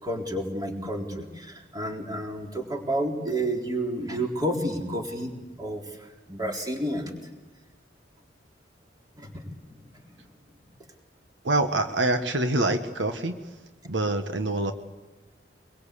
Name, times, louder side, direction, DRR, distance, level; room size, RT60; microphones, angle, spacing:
voice 1, 0.0-7.1 9.2-9.5, right 1 dB, 20° right, 1 dB, 3.9 m, -30 dB
voice 2, 11.4-13.6 13.8-14.7, right 2 dB, 75° right, 7 dB, 1.4 m, -26 dB
24.5 x 22.5 x 8.4 m, 1.2 s
head